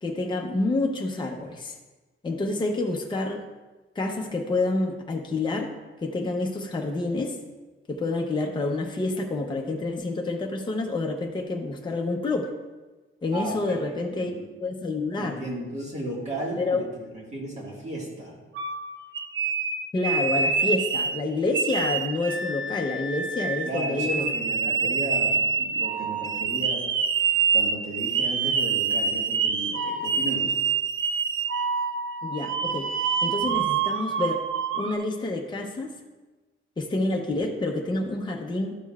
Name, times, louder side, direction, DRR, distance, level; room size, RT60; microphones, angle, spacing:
voice 1, 0.0-1.7 2.2-3.4 4.0-5.7 6.0-7.4 7.9-12.5 13.2-14.3 14.6-15.4 16.6-16.8 19.9-24.2 24.7-25.0 32.2-32.9 33.2-34.4 34.7-35.9 36.8-38.8, left 2 dB, 20° left, 1 dB, 0.6 m, -28 dB
voice 2, 13.3-14.5 15.2-18.4 23.6-26.9 27.5-30.5, right 1 dB, 30° right, -4 dB, 1.7 m, -35 dB
sound 1, 18.6-21.2 21.5-34.9, right 5 dB, 70° right, 0.5 m, -26 dB
12.0 x 6.8 x 2.3 m, 1.2 s
wide cardioid pair, 175°, 21 cm